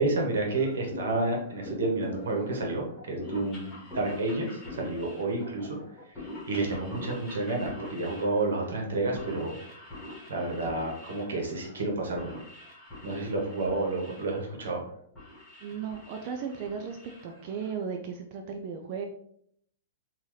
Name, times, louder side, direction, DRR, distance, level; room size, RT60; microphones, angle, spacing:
voice 1, 0.0-5.8 6.1-9.6 10.3-12.4 13.0-14.8, right 2 dB, 85° right, 0 dB, 1.2 m, -30 dB
sound 1, 0.5-18.0, left 2 dB, 5° left, 1.4 m, -45 dB
voice 2, 15.6-17.0 17.2-19.1, right 6 dB, 35° right, 4 dB, 0.3 m, -35 dB
3.8 x 2.7 x 3.1 m, 0.68 s
hypercardioid pair, 170°, 0 cm